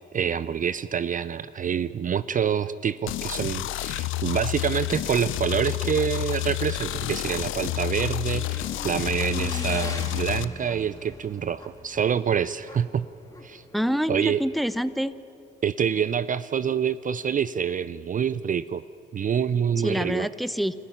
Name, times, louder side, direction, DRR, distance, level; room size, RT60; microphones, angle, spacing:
voice 1, 0.1-13.0 13.4-13.6 14.1-14.4 15.6-18.8 19.1-20.3, right 8 dB, 40° right, 15 dB, 0.5 m, -26 dB
sound 1, 3.1-10.5, left 15 dB, 70° left, 0.6 m, -29 dB
Motorcycle / Engine, 5.9-15.0, left 2 dB, 15° left, 2.8 m, -42 dB
voice 2, 13.7-15.1 19.8-20.7, equal, ahead, 14 dB, 0.8 m, -26 dB
24.0 x 14.5 x 10.0 m, 2.8 s
supercardioid pair, 75°, 21 cm